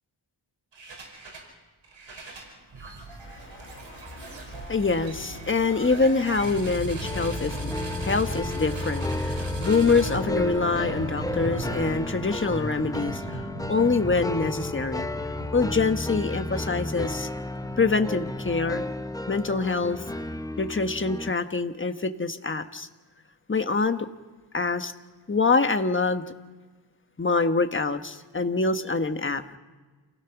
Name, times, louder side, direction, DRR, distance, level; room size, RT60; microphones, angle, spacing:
sound 1, 0.7-1.5 1.8-18.8, right 1 dB, 80° right, 5.4 m, -37 dB
voice 1, 4.2-15.1 15.5-17.3 17.8-18.8 19.3-20.0 20.6-22.9 23.5-24.1 24.5-24.9 25.3-26.2 27.2-29.4, left 4 dB, 25° left, 8 dB, 1.3 m, -25 dB
sound 2, 7.0-21.3, left 2 dB, 10° left, 0.7 m, -33 dB
28.5 x 17.0 x 6.0 m, 1.3 s
wide cardioid pair, 80°, 45 cm